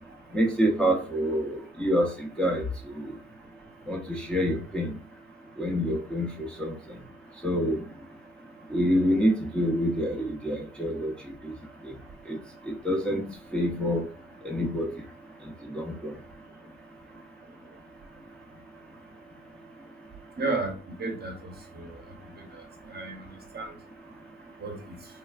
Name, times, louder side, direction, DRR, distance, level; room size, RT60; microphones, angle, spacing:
voice 1, 0.3-3.1 3.9-5.0 5.6-7.0 7.4-7.9 8.7-11.1 11.4-11.5 11.8-11.9 12.3-12.4 12.7-14.0 14.4-14.9 15.7-16.1, equal, 5° left, 0.6 m, -27 dB
voice 2, 20.4-20.7 21.0-21.9 22.9-23.2 23.5-23.7 24.6-24.9, right 3 dB, 35° right, 0.8 m, -32 dB
3.1 x 2.2 x 2.4 m
cardioid pair, 90°, 30 cm